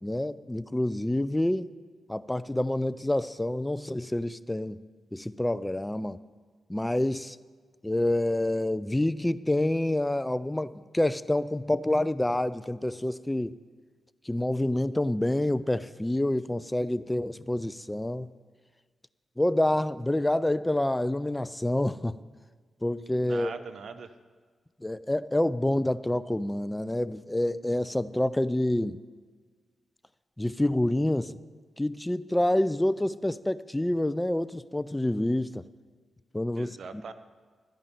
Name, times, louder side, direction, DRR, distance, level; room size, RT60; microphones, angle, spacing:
voice 1, 0.0-1.7 2.1-4.8 5.1-6.2 6.7-7.4 7.8-13.6 14.3-18.3 19.4-22.2 22.8-23.5 24.8-29.0 30.4-31.4 31.8-35.6 36.3-36.8, left 1 dB, 15° left, 16 dB, 0.4 m, -27 dB
voice 2, 23.2-24.1 36.5-37.1, right 5 dB, 70° right, 11 dB, 0.7 m, -41 dB
12.5 x 5.3 x 9.0 m, 1.5 s
supercardioid pair, 40°, 0 cm